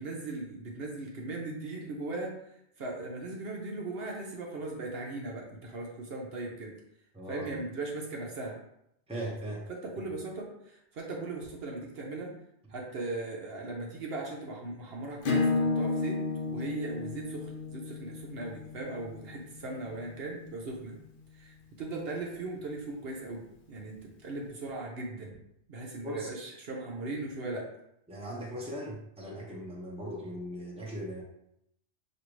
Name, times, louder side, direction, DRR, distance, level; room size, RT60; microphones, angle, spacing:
voice 1, 0.0-2.3 2.8-6.8 7.3-8.6 9.7-12.3 12.7-16.2 16.5-21.0 21.4-25.4 25.7-27.7, right 2 dB, 60° right, -1 dB, 1.0 m, -38 dB
voice 2, 7.1-7.5 9.1-9.6 26.0-26.3 28.1-31.2, equal, 5° right, -4 dB, 0.8 m, -38 dB
Acoustic guitar / Strum, 15.2-20.5, left 3 dB, 55° left, 0.7 m, -32 dB
6.5 x 2.5 x 3.1 m, 0.77 s
omnidirectional pair, 1.2 m